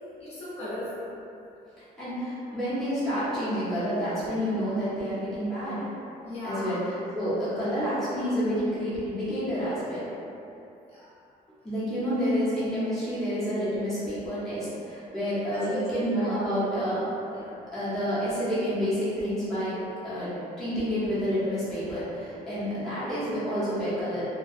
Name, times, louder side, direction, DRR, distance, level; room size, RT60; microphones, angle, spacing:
voice 1, 0.2-0.9 6.2-6.7 10.9-11.0 15.4-16.3 16.6-16.7 17.2-17.5 19.7-20.1, equal, 40° left, -11 dB, 0.7 m, -37 dB
voice 2, 2.0-5.8 6.4-10.1 11.6-17.0 17.7-19.7 20.0-24.2, equal, ahead, -15 dB, 0.8 m, -29 dB
2.2 x 2.2 x 2.5 m, 2.8 s
cardioid pair, 165°, 16 cm